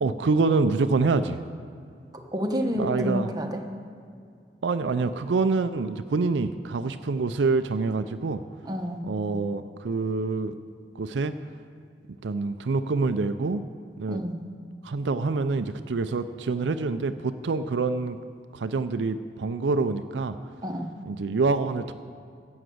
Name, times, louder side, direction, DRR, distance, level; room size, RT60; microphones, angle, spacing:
voice 1, 0.0-1.4 2.8-3.3 4.6-8.4 9.1-10.6 10.9-11.4 12.2-13.6 14.0-14.2 14.8-18.2 18.5-20.4 21.1-21.9, right 4 dB, 80° right, 10 dB, 0.5 m, -26 dB
voice 2, 2.1-3.6 8.6-9.0 14.1-14.4 20.6-20.9, equal, 25° right, 3 dB, 1.1 m, -29 dB
11.5 x 8.0 x 7.8 m, 2.3 s
head